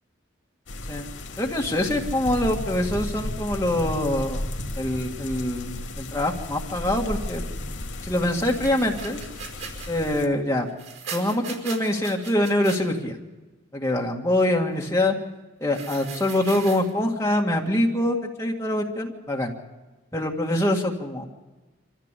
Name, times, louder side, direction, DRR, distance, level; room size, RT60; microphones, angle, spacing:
sound 1, 0.7-10.3, left 1 dB, 70° left, 2.5 m, -34 dB
voice 1, 1.4-4.4 4.8-7.4 8.0-9.2 9.9-10.7 11.1-13.2 13.7-15.2 15.6-19.5 20.1-21.3, left 1 dB, 15° left, 0 dB, 2.0 m, -24 dB
sound 2, 8.5-9.9 10.7-12.8 15.7-16.9, right 6 dB, 75° right, 5.2 m, -39 dB
25.5 x 14.5 x 8.4 m, 1.2 s
head